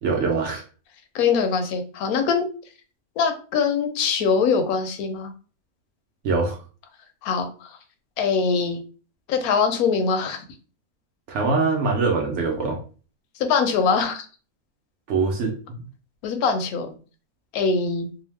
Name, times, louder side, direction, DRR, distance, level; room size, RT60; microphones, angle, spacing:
voice 1, 0.0-0.6 6.2-6.6 11.3-12.8 15.1-15.8, right 4 dB, 65° right, 1 dB, 0.8 m, -23 dB
voice 2, 1.1-2.4 3.2-5.3 7.2-7.7 8.2-8.8 9.3-10.4 13.4-14.3 16.2-16.9 17.5-18.1, left 5 dB, 80° left, 6 dB, 1.0 m, -22 dB
2.7 x 2.0 x 3.1 m, 0.38 s
omnidirectional pair, 1.5 m